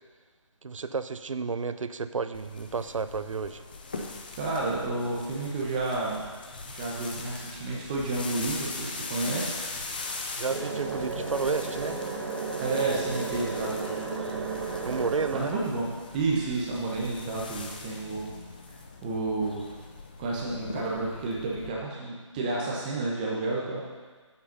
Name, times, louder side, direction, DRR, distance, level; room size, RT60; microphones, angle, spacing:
voice 1, 0.6-3.6 10.4-12.0 14.8-15.5, right 5 dB, 85° right, 12 dB, 0.5 m, -31 dB
sound 1, 2.3-21.7, left 3 dB, 20° left, 0.4 m, -41 dB
voice 2, 4.4-6.2 6.6-9.5 12.6-14.3 15.3-18.3 19.0-19.6 20.2-23.8, right 3 dB, 15° right, -4 dB, 1.1 m, -31 dB
sound 2, 10.5-15.5, right 4 dB, 45° right, 1.2 m, -33 dB
8.1 x 6.8 x 5.5 m, 1.4 s
figure-of-eight pair, 165°, 16 cm